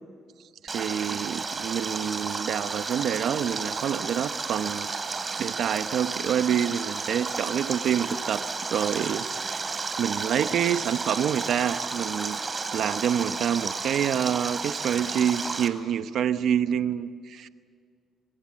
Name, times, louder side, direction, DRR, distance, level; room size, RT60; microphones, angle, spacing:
Stream, 0.7-15.7, right 4 dB, 30° right, 3.0 m, -32 dB
voice 1, 0.7-4.9 5.4-9.6 10.0-12.4 12.7-17.5, right 9 dB, 70° right, 11 dB, 0.9 m, -27 dB
26.0 x 25.0 x 7.6 m, 2.1 s
cardioid pair, 90°, 0 cm